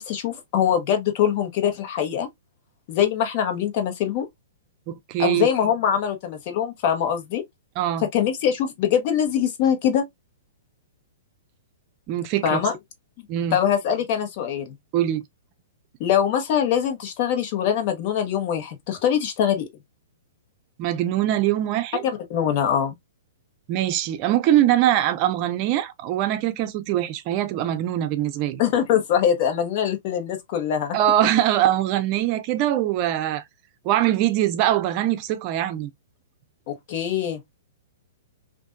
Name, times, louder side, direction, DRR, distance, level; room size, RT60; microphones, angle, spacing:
voice 1, 0.0-2.3 2.9-4.3 5.2-7.4 8.1-10.1 12.4-12.7 13.5-14.7 16.0-19.7 22.3-22.9 28.6-31.0 36.7-37.4, left 9 dB, 45° left, 1.2 m, -23 dB
voice 2, 4.9-5.5 7.8-8.1 12.1-12.7 13.3-13.6 14.9-15.2 20.8-22.0 23.7-28.6 30.9-33.4 33.8-35.9, right 12 dB, 40° right, 0.4 m, -22 dB
3.5 x 2.5 x 2.5 m
hypercardioid pair, 130°, 0 cm